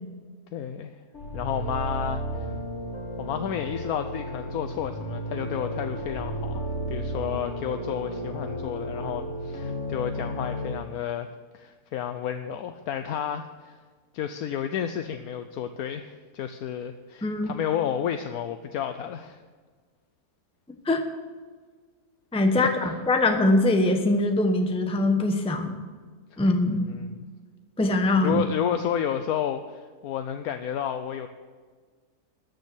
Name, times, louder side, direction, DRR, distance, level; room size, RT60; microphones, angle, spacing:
voice 1, 0.5-0.9 1.3-2.5 3.2-13.8 14.1-19.4 22.6-23.0 26.3-26.4 26.7-27.1 28.2-31.3, left 9 dB, 75° left, 8 dB, 1.1 m, -31 dB
quelqu'onkecocobango, 1.1-10.7, equal, 45° left, 2.2 m, -33 dB
voice 2, 17.2-17.5 20.9-21.0 22.3-25.7 26.4-26.8 27.8-28.4, left 2 dB, 5° left, 5 dB, 0.8 m, -22 dB
13.5 x 6.3 x 9.7 m, 1.5 s
omnidirectional pair, 1.7 m